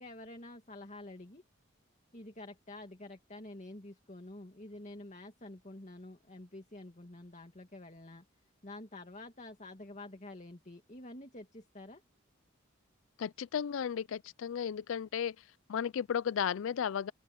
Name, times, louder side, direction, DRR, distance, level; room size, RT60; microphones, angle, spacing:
voice 1, 0.0-1.4 2.1-8.2 8.6-12.0, left 2 dB, 35° left, 2.4 m, -48 dB
voice 2, 13.2-15.4 15.7-17.1, left 8 dB, 80° left, 0.4 m, -34 dB
open air
head